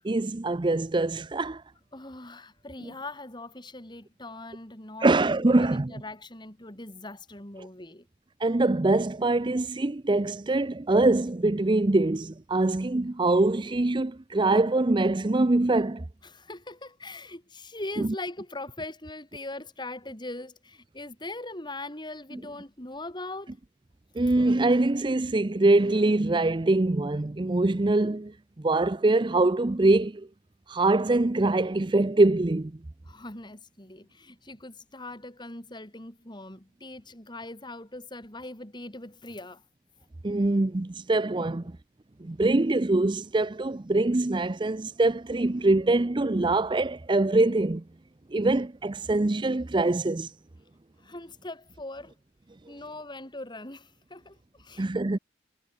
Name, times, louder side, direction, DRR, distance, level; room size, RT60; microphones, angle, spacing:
voice 1, 0.0-1.6 5.0-5.9 8.4-16.0 18.0-18.1 24.2-30.3 30.7-32.7 40.2-41.6 42.2-47.8 48.3-50.3 54.8-55.2, right 2 dB, 25° right, 0.5 m, -24 dB
voice 2, 1.9-8.1 16.2-23.5 33.1-39.6 41.4-41.6 51.0-52.1 52.7-54.9, left 2 dB, 25° left, 3.7 m, -41 dB
head